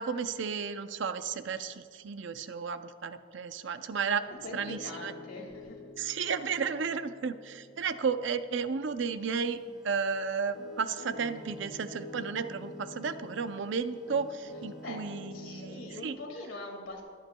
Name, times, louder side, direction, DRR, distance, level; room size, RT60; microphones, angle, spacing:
voice 1, 0.0-5.1 6.0-16.2, right 5 dB, 70° right, 11 dB, 0.5 m, -33 dB
voice 2, 4.3-5.8 14.8-15.0 15.3-17.0, left 2 dB, 90° left, 1 dB, 2.1 m, -43 dB
Piano, 4.3-13.6 14.1-16.1, left 2 dB, 60° left, 2.6 m, -48 dB
sound 1, 9.5-15.4, right 1 dB, ahead, 1.3 m, -60 dB
22.0 x 9.1 x 2.2 m, 2.2 s
head